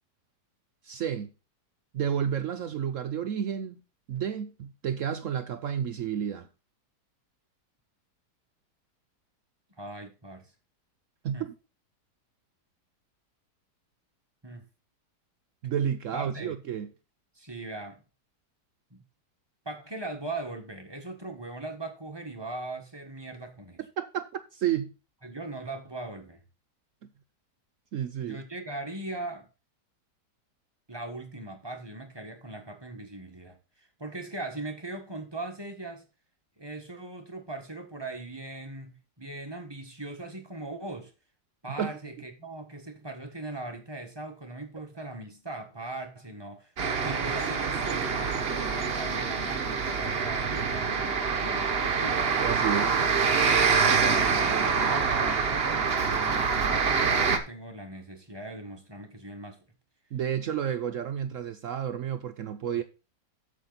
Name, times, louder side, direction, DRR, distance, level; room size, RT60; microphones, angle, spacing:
voice 1, 0.8-1.3 1.9-3.8 4.1-6.5 11.2-11.5 15.6-16.9 24.0-24.9 27.9-28.4 41.8-42.0 52.4-53.0 60.1-62.8, right 9 dB, 65° right, 0.8 m, -31 dB
voice 2, 9.8-10.5 11.3-11.5 14.4-14.7 16.1-16.5 17.3-18.0 18.9-19.0 19.6-23.8 25.2-26.4 28.2-29.5 30.9-36.0 36.6-41.1 41.6-52.3 53.8-59.6 62.7-62.8, right 2 dB, 15° right, 1.3 m, -40 dB
sound 1, 46.8-57.4, right 5 dB, 40° right, 1.1 m, -26 dB
8.4 x 7.3 x 4.0 m
omnidirectional pair, 1.8 m